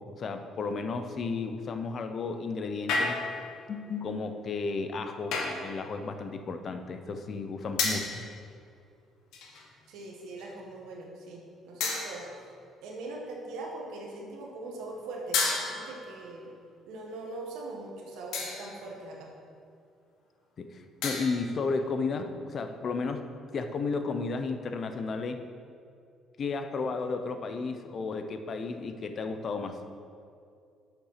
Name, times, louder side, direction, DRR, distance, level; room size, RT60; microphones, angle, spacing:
voice 1, 0.0-3.2 3.7-8.2 20.7-23.3 23.5-25.5 26.4-29.8, left 4 dB, 45° left, 8 dB, 0.7 m, -33 dB
sound 1, 2.9-3.5 5.3-5.7 7.8-8.2 9.3-9.7 10.4-10.5 11.8-12.4 15.3-16.1 18.3-18.8 21.0-21.5, left 3 dB, 80° left, 1.4 m, -31 dB
voice 2, 9.9-12.3 12.8-15.4 15.7-16.5 16.8-19.3, right 2 dB, 85° right, -1 dB, 1.5 m, -41 dB
6.9 x 5.7 x 5.7 m, 2.4 s
cardioid pair, 100°, 0 cm